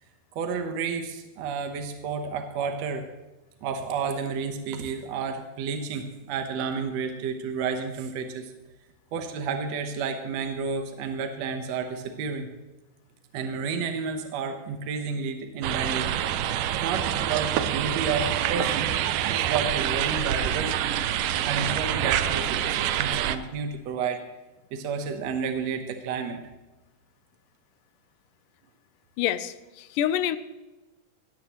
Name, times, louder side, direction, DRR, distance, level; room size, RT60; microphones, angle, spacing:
voice 1, 0.4-3.1 3.6-8.5 9.1-12.5 13.3-16.1 16.7-18.9 19.2-24.2 24.7-26.4, right 5 dB, 65° right, 6 dB, 2.0 m, -31 dB
sound 1, 15.6-23.4, right 11 dB, 80° right, 2.2 m, -26 dB
voice 2, 29.2-30.4, left 11 dB, 85° left, 13 dB, 2.3 m, -27 dB
18.0 x 13.5 x 3.1 m, 1.1 s
omnidirectional pair, 3.7 m